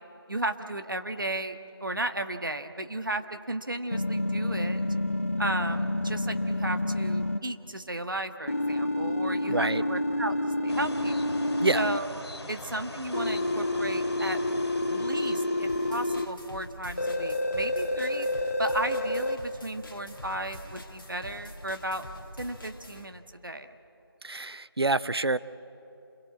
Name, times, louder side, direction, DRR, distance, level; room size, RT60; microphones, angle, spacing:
voice 1, 0.3-4.8 5.4-11.1 11.7-14.4 14.8-18.3 18.6-22.1 22.4-23.7, right 1 dB, 55° right, 8 dB, 1.4 m, -34 dB
sound 1, 3.9-7.4 8.5-12.0 13.1-16.3 17.0-19.4, left 1 dB, 35° left, 0.7 m, -29 dB
voice 2, 9.5-9.8 11.6-11.8 24.2-25.4, right 2 dB, 75° right, 16 dB, 0.7 m, -27 dB
sound 2, 10.7-16.3, left 1 dB, 80° left, 2.7 m, -43 dB
sound 3, 15.7-23.1, left 1 dB, 55° left, 2.1 m, -45 dB
27.5 x 21.5 x 8.6 m, 3.0 s
figure-of-eight pair, 175°, 13 cm